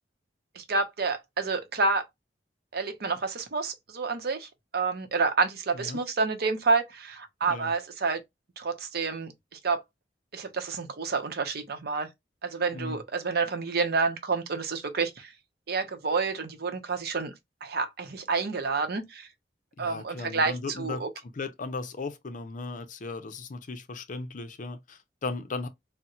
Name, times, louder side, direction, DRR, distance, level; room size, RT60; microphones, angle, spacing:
voice 1, 0.5-2.1 2.7-8.2 8.6-9.8 10.3-12.1 12.4-15.3 15.7-17.3 17.6-19.3 19.8-21.1, right 4 dB, 60° right, 0.7 m, -29 dB
voice 2, 19.8-21.1 21.3-25.7, left 3 dB, 45° left, 0.5 m, -36 dB
4.1 x 2.1 x 2.4 m
head